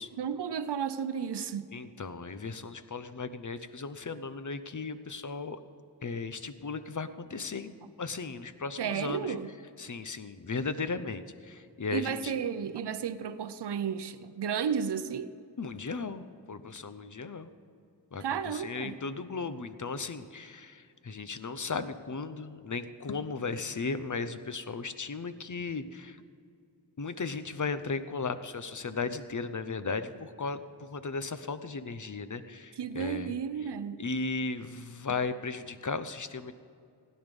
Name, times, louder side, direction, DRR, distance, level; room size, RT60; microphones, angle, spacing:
voice 1, 0.2-1.7 8.8-9.5 11.9-15.3 18.2-18.9 32.8-34.0, right 7 dB, 75° right, 0.7 m, -33 dB
voice 2, 1.7-5.6 6.0-9.3 9.8-12.3 15.6-17.5 18.1-26.2 27.0-33.3 34.0-36.5, left 4 dB, 45° left, 0.8 m, -36 dB
16.5 x 10.0 x 5.3 m
wide cardioid pair, 55°, 41 cm